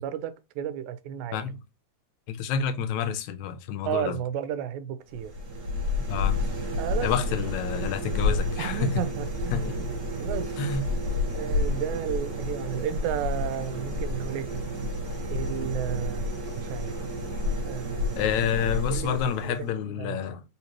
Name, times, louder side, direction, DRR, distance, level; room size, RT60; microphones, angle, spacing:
voice 1, 0.0-1.4 3.9-5.3 6.8-7.1 8.6-9.9 10.2-10.5 11.3-14.5 15.3-16.2 16.5-16.9 17.7-18.2 18.9-19.2 19.4-20.2, right 10 dB, 90° right, 2.0 m, -33 dB
voice 2, 2.3-4.2 6.1-6.4 7.0-9.0 9.5-9.6 10.6-10.8 18.2-20.4, left 7 dB, 80° left, 1.9 m, -28 dB
sound 1, 5.1-19.8, left 2 dB, 50° right, 1.5 m, -30 dB
4.3 x 4.1 x 2.9 m
omnidirectional pair, 3.4 m